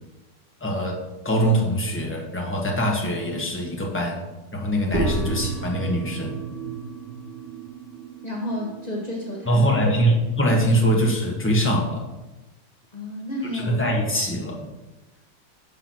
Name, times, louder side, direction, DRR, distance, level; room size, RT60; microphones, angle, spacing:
voice 1, 0.6-4.2 4.5-6.3 9.5-12.1 13.5-14.7, equal, 10° left, -1 dB, 0.7 m, -23 dB
sound 1, 4.9-11.6, right 2 dB, 25° right, 2.4 m, -33 dB
voice 2, 8.2-9.6 12.9-13.8, left 1 dB, 65° left, -2 dB, 0.4 m, -31 dB
5.8 x 5.0 x 5.9 m, 1.1 s
omnidirectional pair, 2.2 m